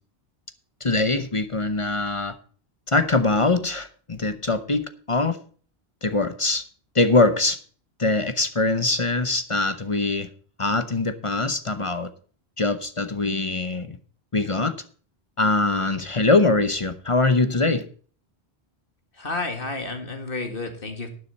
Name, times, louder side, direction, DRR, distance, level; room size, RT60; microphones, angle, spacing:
voice 1, 0.8-2.3 2.9-5.4 6.0-6.6 6.9-7.6 8.0-10.3 10.6-12.1 12.6-14.0 14.3-14.7 15.4-17.8, left 2 dB, 30° left, 10 dB, 0.9 m, -22 dB
voice 2, 19.2-21.1, left 3 dB, 55° left, 5 dB, 2.4 m, -31 dB
11.5 x 9.9 x 4.2 m, 0.42 s
omnidirectional pair, 1.1 m